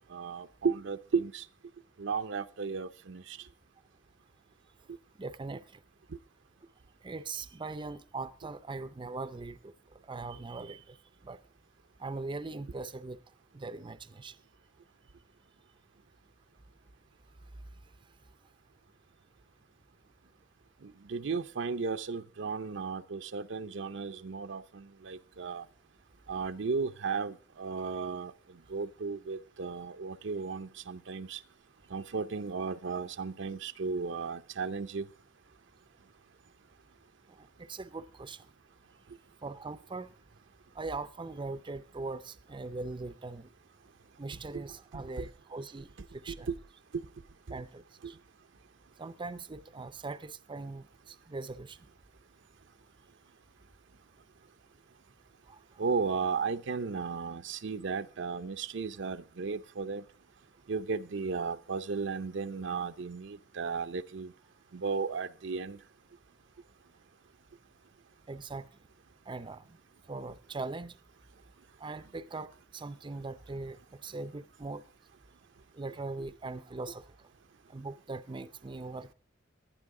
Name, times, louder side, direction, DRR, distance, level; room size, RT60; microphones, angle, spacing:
voice 1, 0.1-1.4 2.0-3.4 20.8-25.7 26.3-28.3 28.7-31.4 31.9-35.1 44.5-44.6 44.9-45.3 46.3-46.5 46.9-47.0 55.8-60.0 60.7-64.3 64.7-65.8, right 5 dB, 65° right, 0.6 m, -35 dB
voice 2, 5.2-5.7 7.0-9.7 10.1-11.0 11.2-11.4 12.0-13.2 13.5-14.3 32.0-32.1 37.4-38.4 39.4-40.1 40.7-43.5 44.2-46.5 47.5-48.2 49.0-51.8 55.5-55.6 68.3-68.7 69.3-69.8 70.1-70.9 71.8-74.8 75.8-77.1 77.7-79.1, right 3 dB, 25° right, 0.5 m, -41 dB
19.0 x 11.5 x 3.7 m
head